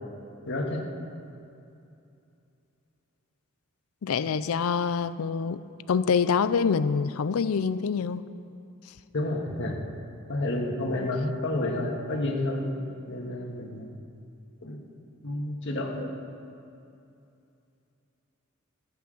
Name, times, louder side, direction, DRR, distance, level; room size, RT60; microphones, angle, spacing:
voice 1, 0.4-0.9 9.1-9.8 10.3-12.8 13.1-13.9 14.6-14.8 15.2-16.1, left 1 dB, 55° left, 1 dB, 1.7 m, -30 dB
voice 2, 4.0-5.6 5.9-8.2, left 6 dB, 80° left, 15 dB, 0.4 m, -25 dB
15.0 x 6.0 x 7.7 m, 2.7 s
head